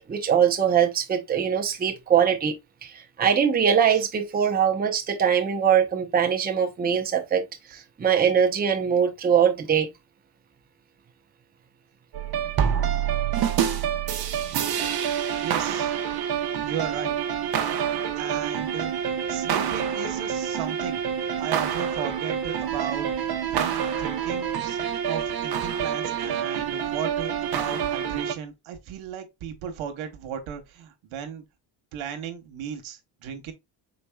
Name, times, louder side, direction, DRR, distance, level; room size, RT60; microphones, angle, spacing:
voice 1, 0.0-2.5 2.8-7.4 7.7-9.9 14.6-14.7, right 8 dB, 20° right, 0.7 m, -22 dB
sound 1, 12.1-28.3, right 8 dB, 50° right, 0.9 m, -27 dB
voice 2, 15.4-16.0 16.6-17.2 18.2-18.9 19.3-24.8 25.1-31.4 31.9-33.5, right 8 dB, 85° right, 1.2 m, -36 dB
5.2 x 4.1 x 2.3 m
cardioid pair, 130°, 47 cm